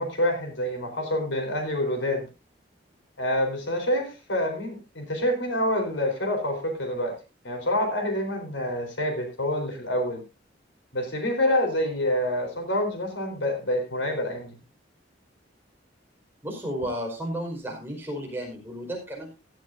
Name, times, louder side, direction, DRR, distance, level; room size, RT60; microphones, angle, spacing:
voice 1, 0.0-2.3 3.2-7.2 7.4-10.2 10.9-14.6, left 1 dB, 90° left, 5 dB, 4.2 m, -27 dB
voice 2, 16.4-19.3, equal, 10° right, -1 dB, 5.0 m, -33 dB
16.0 x 12.0 x 2.7 m, 0.27 s
head